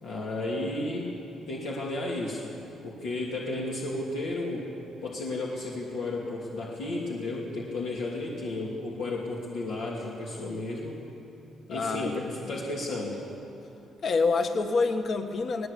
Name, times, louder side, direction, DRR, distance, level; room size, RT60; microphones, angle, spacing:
voice 1, 0.0-1.2 1.5-2.5 2.8-4.7 5.0-11.0 11.7-13.2, left 2 dB, 90° left, -4 dB, 3.0 m, -33 dB
voice 2, 11.7-12.5 14.0-15.7, left 4 dB, 55° left, 6 dB, 1.5 m, -27 dB
20.5 x 19.0 x 8.5 m, 2.9 s
cardioid pair, 90°, 0 cm